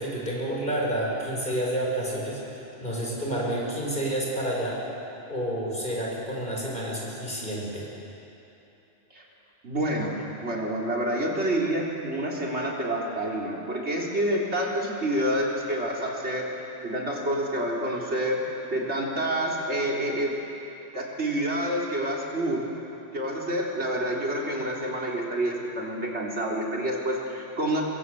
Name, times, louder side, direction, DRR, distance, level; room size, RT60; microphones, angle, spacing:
voice 1, 0.0-2.4 2.8-4.8 5.3-7.9, right 1 dB, 40° left, -3 dB, 6.3 m, -29 dB
voice 2, 9.6-16.5 16.8-18.4 18.7-20.4 20.9-22.7 23.1-27.8, right 1 dB, 65° right, -2 dB, 3.8 m, -28 dB
25.0 x 22.5 x 8.4 m, 2.9 s
omnidirectional pair, 1.2 m